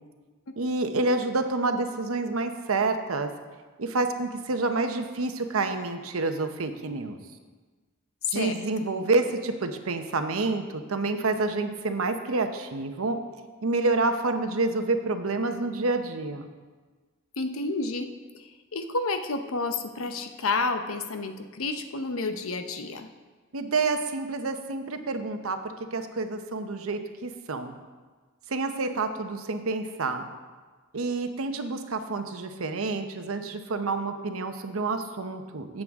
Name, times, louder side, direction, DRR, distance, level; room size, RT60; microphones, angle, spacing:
voice 1, 0.6-3.3 3.8-7.2 8.3-13.2 13.6-16.5 23.5-25.6 25.9-27.7 28.5-30.3 30.9-35.8, right 3 dB, 85° right, 7 dB, 0.9 m, -28 dB
voice 2, 8.3-8.9 17.4-23.1, left 3 dB, 80° left, 7 dB, 0.8 m, -30 dB
15.5 x 7.6 x 3.6 m, 1.4 s
head